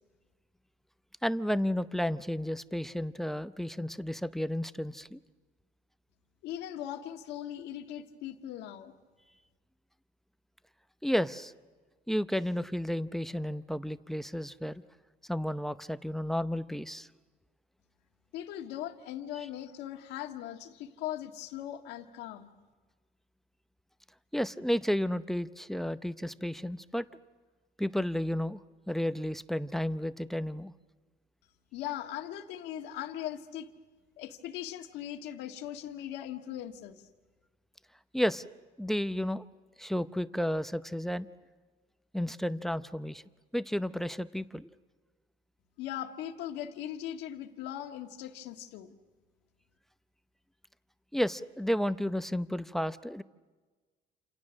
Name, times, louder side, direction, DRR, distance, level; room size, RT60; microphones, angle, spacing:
voice 1, 1.2-5.2 11.0-11.5 12.1-14.8 15.3-17.1 24.3-27.0 27.8-28.6 28.9-30.7 38.1-38.4 38.8-39.5 39.8-41.3 42.1-43.2 43.5-44.7 51.1-53.2, equal, ahead, 13 dB, 0.7 m, -32 dB
voice 2, 6.4-8.9 18.3-22.5 31.7-33.7 34.2-37.0 45.8-48.9, left 11 dB, 90° left, 5 dB, 1.7 m, -39 dB
28.5 x 28.0 x 6.4 m, 1.3 s
cardioid pair, 110°, 17 cm